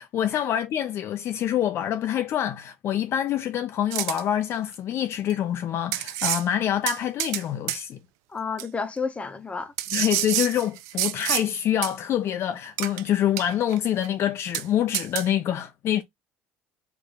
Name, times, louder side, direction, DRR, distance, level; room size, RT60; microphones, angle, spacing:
voice 1, 0.0-8.0 9.9-16.0, left 10 dB, 55° left, 0.4 m, -26 dB
sound 1, 3.9-4.2 5.3-5.4 5.9-6.4 6.9-7.4 7.7-7.8 8.6-8.7 9.8-11.5 11.8-11.9 12.8-13.0 13.4-13.8 14.0-14.1 14.5-14.6 14.9-15.3, right 14 dB, 70° right, 0.4 m, -28 dB
voice 2, 8.3-9.7, left 5 dB, 25° left, 0.8 m, -31 dB
3.4 x 2.6 x 3.7 m
hypercardioid pair, 70°, 5 cm